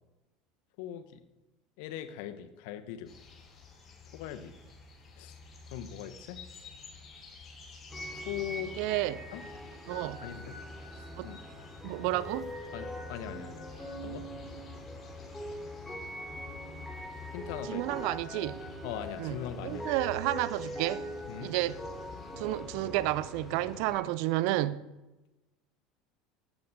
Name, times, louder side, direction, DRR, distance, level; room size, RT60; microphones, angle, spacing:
voice 1, 0.8-1.2 1.8-3.1 4.1-4.5 5.2-5.3 5.7-6.4 8.1-8.7 9.3-9.4 10.2-10.6 10.9-11.4 12.7-13.7 14.0-14.2 17.3-18.0 18.8-19.9 21.3-21.5, left 11 dB, 60° left, 1.0 m, -40 dB
sound 1, 3.1-22.6, left 4 dB, 35° left, 5.5 m, -52 dB
sound 2, 7.9-24.0, equal, 10° left, 3.9 m, -42 dB
voice 2, 8.8-9.2 9.9-10.2 11.2-11.3 11.8-12.5 17.6-18.6 19.2-21.1 21.4-21.8 22.4-24.9, right 16 dB, 60° right, 0.5 m, -31 dB
19.0 x 14.5 x 2.7 m
figure-of-eight pair, 70°, 0 cm